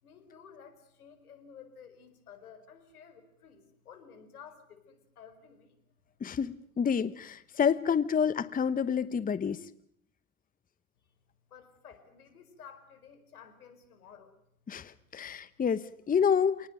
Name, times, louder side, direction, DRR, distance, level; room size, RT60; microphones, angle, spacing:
voice 1, 0.0-5.8 11.5-14.3, left 7 dB, 85° left, 10 dB, 4.9 m, -53 dB
voice 2, 6.2-9.6 14.7-16.7, left 7 dB, 20° left, 16 dB, 1.1 m, -28 dB
27.5 x 19.5 x 9.0 m, 0.69 s
hypercardioid pair, 90°, 43 cm